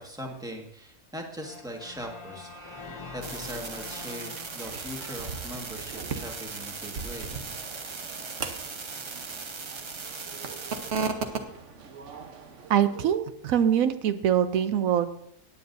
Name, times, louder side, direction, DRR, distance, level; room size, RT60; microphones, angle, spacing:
voice 1, 0.0-2.5 3.1-7.4, equal, 5° right, 1 dB, 1.5 m, -40 dB
sound 1, 1.3-6.4, left 3 dB, 25° left, 1.4 m, -45 dB
sound 2, 3.2-10.9, right 4 dB, 45° right, 0.3 m, -39 dB
sound 3, 3.6-13.1, right 5 dB, 60° right, 1.3 m, -38 dB
voice 2, 12.7-15.1, right 9 dB, 80° right, 11 dB, 1.0 m, -23 dB
17.5 x 9.5 x 2.6 m, 0.72 s
omnidirectional pair, 1.4 m